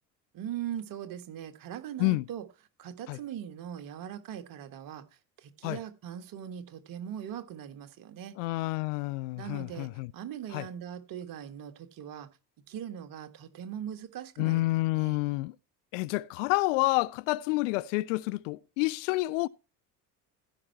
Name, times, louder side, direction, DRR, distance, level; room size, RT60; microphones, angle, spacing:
voice 1, 0.3-2.5 2.8-8.3 9.4-12.3 12.7-14.6 14.9-15.2, right 10 dB, 40° right, 1.5 m, -40 dB
voice 2, 8.4-10.1 10.5-10.6 14.4-15.5 15.9-19.5, left 21 dB, 50° left, 0.5 m, -29 dB
15.5 x 5.7 x 4.4 m
figure-of-eight pair, 65°, 49 cm